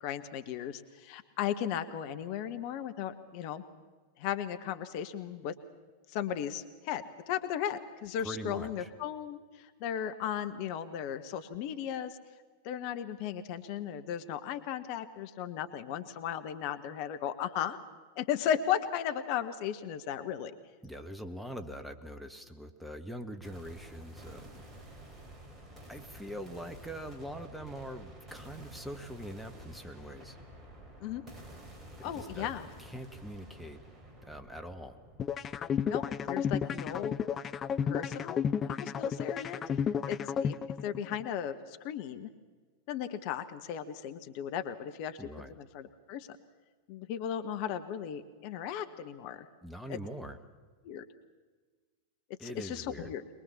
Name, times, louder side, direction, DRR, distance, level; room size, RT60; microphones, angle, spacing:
voice 1, 0.0-3.6 4.2-5.5 6.1-12.2 12.6-17.8 18.2-20.5 31.0-31.2 32.0-32.7 35.8-37.2 37.8-38.4 38.7-39.6 40.1-40.6 40.8-42.3 42.9-45.3 45.6-46.4 46.9-49.5 49.9-50.0 50.8-51.0 52.4-53.2, left 9 dB, 45° left, 9 dB, 1.1 m, -36 dB
voice 2, 8.2-8.9 20.8-24.5 25.9-30.4 32.0-32.5 32.8-33.8 34.2-35.0 45.2-45.5 49.6-50.4 52.4-53.1, equal, ahead, 6 dB, 1.5 m, -43 dB
sound 1, 23.4-37.4, right 1 dB, 20° right, 3.7 m, -51 dB
sound 2, 35.2-41.2, left 7 dB, 25° left, 0.6 m, -32 dB
22.5 x 21.5 x 7.2 m, 1.4 s
figure-of-eight pair, 90°, 0 cm